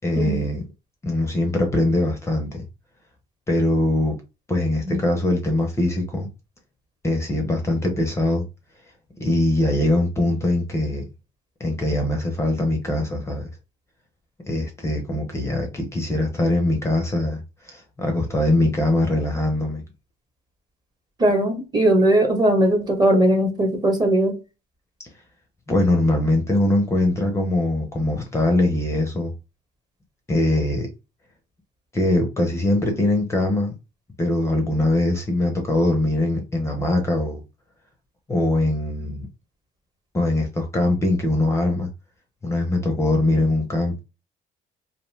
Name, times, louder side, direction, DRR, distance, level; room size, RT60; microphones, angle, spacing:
voice 1, 0.0-0.6 1.0-2.6 3.5-4.2 4.5-6.3 7.0-8.4 9.2-11.1 11.6-13.5 14.5-19.8 25.7-29.3 30.3-30.9 31.9-33.7 34.2-37.4 38.3-39.3 40.1-41.9 42.4-44.0, left 1 dB, 15° left, 0.5 m, -22 dB
voice 2, 21.2-24.3, right 1 dB, 25° right, 0.9 m, -19 dB
2.5 x 2.1 x 3.1 m
cardioid pair, 110°, 17 cm